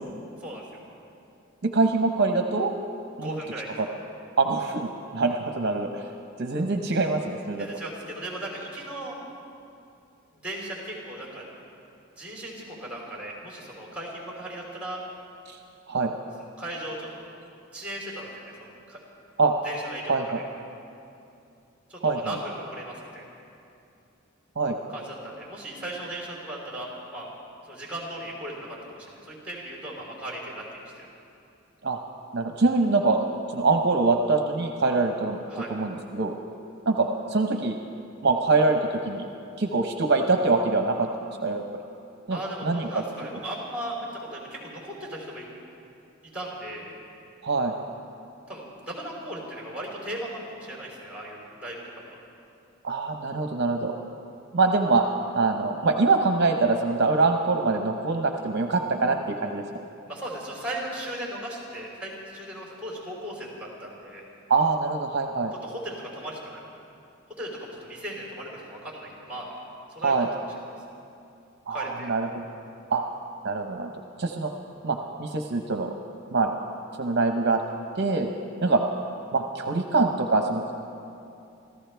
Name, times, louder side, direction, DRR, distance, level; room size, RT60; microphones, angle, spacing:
voice 1, 1.6-2.7 3.2-3.4 3.8-3.9 4.4-4.9 5.1-6.1 6.4-7.7 15.9-16.1 19.4-19.5 20.1-20.4 22.0-22.4 24.6-24.8 31.8-32.0 32.3-33.2 33.5-35.4 35.7-36.4 36.9-37.8 38.2-39.3 39.6-41.1 41.4-41.6 42.3-42.9 47.4-47.7 52.8-53.9 54.5-55.0 55.4-59.6 64.5-65.5 70.0-70.3 71.7-72.4 72.9-73.0 73.4-73.9 74.2-74.5 74.8-75.9 76.3-76.5 77.0-77.6 77.9-78.3 78.6-78.8 79.3-80.7, right 3 dB, 55° right, 4 dB, 0.8 m, -24 dB
voice 2, 3.2-3.7 7.6-9.2 10.3-11.4 12.2-15.0 16.6-17.2 17.7-19.0 19.6-20.1 21.9-23.2 24.9-27.3 27.6-31.1 35.5-35.7 42.3-45.5 46.3-46.9 48.5-52.1 60.1-64.2 65.6-66.6 67.4-69.5 69.9-70.2 71.7-72.1, right 1 dB, 5° right, -4 dB, 3.9 m, -37 dB
27.0 x 15.0 x 3.4 m, 2.7 s
head